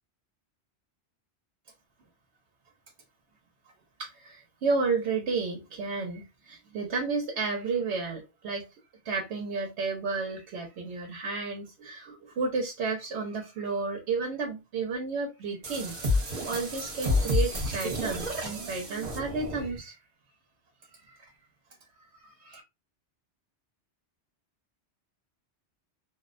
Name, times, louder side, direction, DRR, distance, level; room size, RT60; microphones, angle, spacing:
voice 1, 4.0-8.7 9.0-20.0 20.9-21.3 22.2-22.6, right 4 dB, 75° right, 0.9 m, -32 dB
sound 1, 15.6-19.8, left 2 dB, 40° right, 0.9 m, -30 dB
2.4 x 2.0 x 2.4 m
omnidirectional pair, 1.2 m